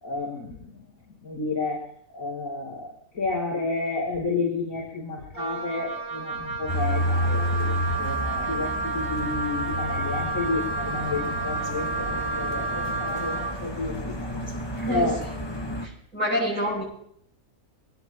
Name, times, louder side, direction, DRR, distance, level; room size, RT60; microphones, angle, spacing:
voice 1, 0.0-0.8 1.2-14.5 14.9-15.2 15.5-15.8, left 3 dB, 60° left, -5 dB, 3.3 m, -31 dB
Wind instrument woodwind instrument, 5.3-13.6, right 4 dB, 55° right, 2.3 m, -31 dB
sound 1, 6.7-15.9, equal, 20° left, 1.4 m, -31 dB
voice 2, 14.7-15.1 15.8-16.8, equal, 80° right, -5 dB, 8.7 m, -27 dB
23.0 x 18.0 x 3.0 m, 0.68 s
omnidirectional pair, 1.6 m